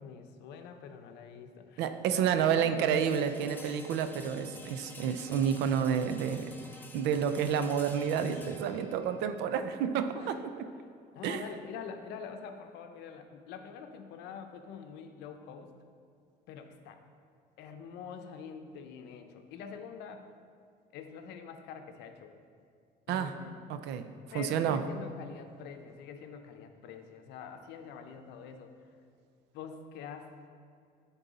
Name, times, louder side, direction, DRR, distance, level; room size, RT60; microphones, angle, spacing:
voice 1, 0.0-3.0 9.3-10.4 11.1-15.7 16.5-17.0 17.6-20.3 20.9-22.3 23.1-23.5 24.3-28.7 29.5-30.4, left 6 dB, 90° left, 6 dB, 0.6 m, -45 dB
voice 2, 1.8-6.5 6.9-10.3 11.2-11.4 23.1-23.4 23.7-24.1 24.3-24.8, right 8 dB, 90° right, 9 dB, 0.5 m, -29 dB
sound 1, 2.9-12.8, left 2 dB, 10° left, 0.6 m, -51 dB
9.9 x 4.0 x 4.0 m, 2.4 s
cardioid pair, 110°, 17 cm